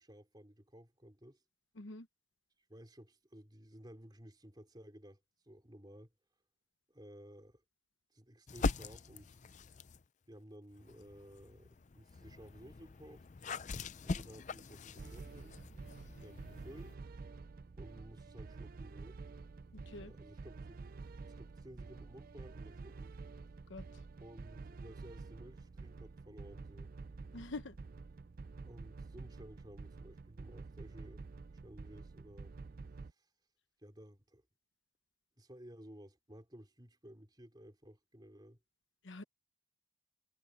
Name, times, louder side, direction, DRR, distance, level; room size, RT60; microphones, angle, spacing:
voice 1, 0.0-1.4 2.7-6.1 6.9-7.6 8.1-9.4 10.3-13.3 14.0-15.6 16.2-17.0 17.8-19.2 20.0-20.8 21.3-23.1 24.2-26.9 28.6-31.3 31.6-32.5 33.1-33.3 33.8-34.4 35.4-38.6, equal, 20° right, 3.6 m, -55 dB
voice 2, 1.8-2.1 19.7-20.1 23.7-23.9 27.3-27.8 39.0-39.2, left 2 dB, 65° left, 1.0 m, -45 dB
sound 1, 8.5-10.1 10.7-16.9, left 3 dB, 35° left, 0.5 m, -42 dB
sound 2, 15.0-33.1, right 4 dB, 45° right, 0.4 m, -49 dB
head